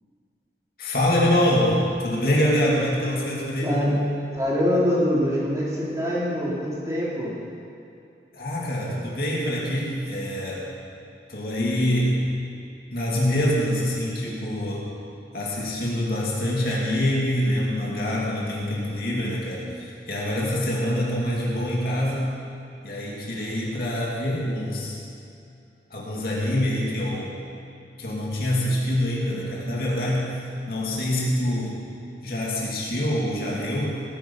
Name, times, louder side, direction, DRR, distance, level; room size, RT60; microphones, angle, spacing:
voice 1, 0.8-3.8 8.3-10.7 11.3-12.3 12.9-14.9 15.3-22.4 22.8-25.0 25.9-27.3 28.0-30.4 30.7-31.8 32.2-34.0, left 1 dB, 55° left, -4 dB, 2.6 m, -25 dB
voice 2, 3.6-4.0 4.3-7.3, equal, 20° right, -7 dB, 3.8 m, -24 dB
18.5 x 10.5 x 5.6 m, 2.6 s
head